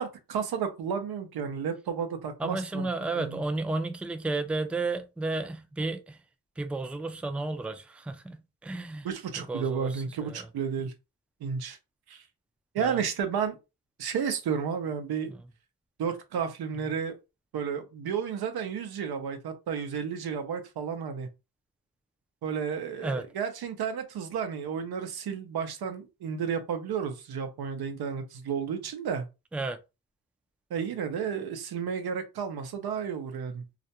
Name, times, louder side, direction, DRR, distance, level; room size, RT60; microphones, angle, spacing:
voice 1, 0.0-2.9 3.1-3.4 9.0-10.9 11.4-11.8 12.1-12.2 12.7-13.6 14.0-15.3 16.0-17.2 17.5-21.3 22.4-29.3 30.7-33.6, right 7 dB, 90° right, 0.6 m, -32 dB
voice 2, 2.4-6.2 6.6-9.1 9.5-9.9 10.2-10.5 12.8-13.0 23.0-23.3 29.5-29.8, right 2 dB, 5° right, 0.3 m, -32 dB
2.4 x 2.1 x 2.8 m
cardioid pair, 60°, 37 cm